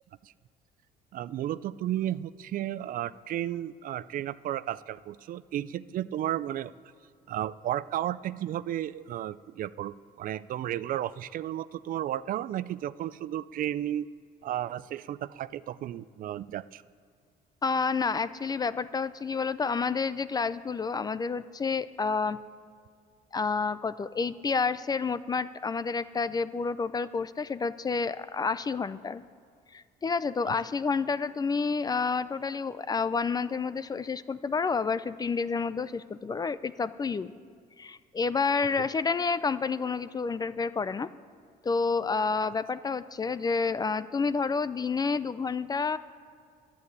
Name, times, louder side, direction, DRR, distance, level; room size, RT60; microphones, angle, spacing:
voice 1, 1.1-6.7 7.3-14.1 14.4-16.8 30.5-30.6, right 12 dB, 55° right, 17 dB, 0.4 m, -33 dB
voice 2, 17.6-22.4 23.3-29.2 29.7-37.3 37.8-41.1 41.6-46.0, left 4 dB, 25° left, 15 dB, 0.4 m, -29 dB
11.5 x 8.7 x 9.6 m, 2.2 s
cardioid pair, 110°, 17 cm